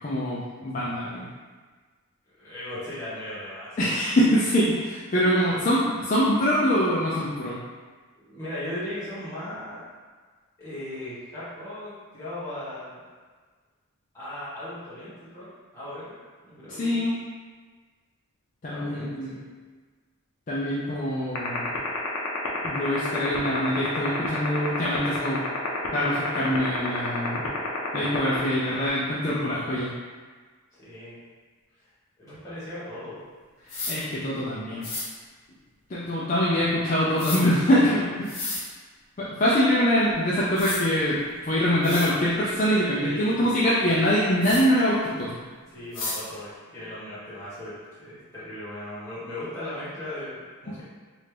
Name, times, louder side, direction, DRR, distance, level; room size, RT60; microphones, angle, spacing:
voice 1, 0.0-1.3 3.8-7.6 16.7-17.2 18.6-19.3 20.5-21.7 22.6-25.4 25.9-27.5 27.9-29.9 33.9-34.9 35.9-38.4 39.2-41.2 41.4-45.4, equal, 35° left, -8 dB, 0.4 m, -24 dB
voice 2, 2.4-4.0 8.1-9.8 10.6-13.0 14.1-15.5 15.7-16.1 16.4-17.1 18.7-19.4 30.8-31.2 31.8-31.9 32.2-33.2 43.0-43.5 45.7-50.8, left 1 dB, 15° left, -12 dB, 1.4 m, -37 dB
sound 1, 21.4-28.9, left 6 dB, 90° left, 0.6 m, -28 dB
sound 2, 33.7-34.0 34.8-35.1 37.2-37.4 38.2-38.6 40.1-40.2 40.6-40.8 41.5-41.6 41.8-42.1 44.4-44.6 45.9-46.2, left 2 dB, 55° left, 0.9 m, -32 dB
3.2 x 2.6 x 3.3 m, 1.5 s
head